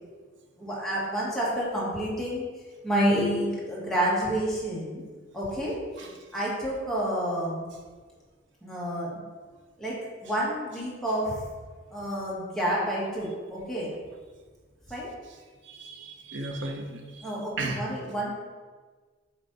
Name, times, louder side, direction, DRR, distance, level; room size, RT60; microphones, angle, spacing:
voice 1, 0.6-2.5 2.8-5.0 5.3-7.7 8.6-9.2 9.8-9.9 10.2-11.4 11.9-13.9 14.9-15.1 17.2-18.3, equal, ahead, -7 dB, 1.5 m, -29 dB
voice 2, 15.6-17.3 17.6-17.8, right 2 dB, 65° right, 2 dB, 0.7 m, -35 dB
7.9 x 3.3 x 4.0 m, 1.4 s
head